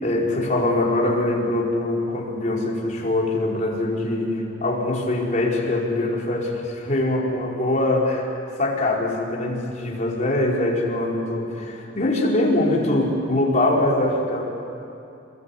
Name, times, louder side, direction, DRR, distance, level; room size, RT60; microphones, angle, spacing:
voice 1, 0.0-8.3 8.6-14.4, left 1 dB, 40° left, -2 dB, 4.4 m, -23 dB
28.0 x 21.5 x 8.4 m, 2.7 s
head